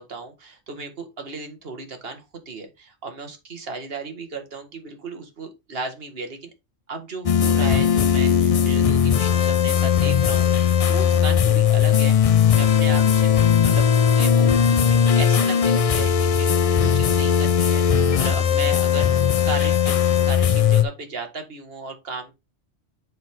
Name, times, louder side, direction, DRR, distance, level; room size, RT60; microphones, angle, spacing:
voice 1, 0.0-6.5 6.9-13.3 13.6-13.9 14.2-22.3, right 4 dB, 55° right, 5 dB, 1.8 m, -35 dB
sound 1, 7.3-20.8, left 8 dB, 70° left, 0.3 m, -18 dB
7.5 x 4.8 x 3.6 m, 0.23 s
omnidirectional pair, 1.2 m